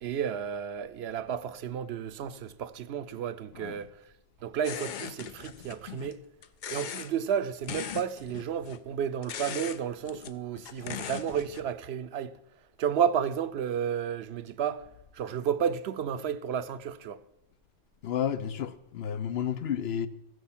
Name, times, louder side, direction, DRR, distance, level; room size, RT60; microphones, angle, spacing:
voice 1, 0.0-3.9 4.4-6.2 6.7-12.3 12.8-14.9 15.1-17.2, right 8 dB, 80° right, 0.9 m, -32 dB
sound 1, 4.6-6.2 6.4-7.1 7.6-8.8 9.2-9.8 10.1-11.7, left 9 dB, 55° left, 0.6 m, -39 dB
voice 2, 18.0-20.1, left 9 dB, 80° left, 0.9 m, -31 dB
14.0 x 6.3 x 7.2 m
omnidirectional pair, 1.1 m